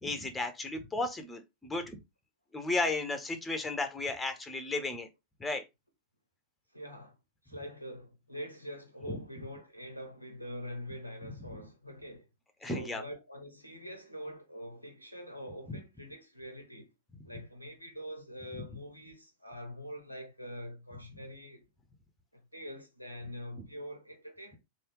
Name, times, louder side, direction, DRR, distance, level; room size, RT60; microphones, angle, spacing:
voice 1, 0.0-2.0 2.5-5.1 5.4-5.6 9.1-9.2 11.5-11.6 12.6-13.0, left 2 dB, 10° left, 0.7 m, -34 dB
voice 2, 6.7-7.2 7.4-12.3 12.6-16.9 17.2-21.6 22.3-24.6, equal, 90° left, 0.7 m, -44 dB
3.3 x 2.7 x 2.9 m
figure-of-eight pair, 90°, 0 cm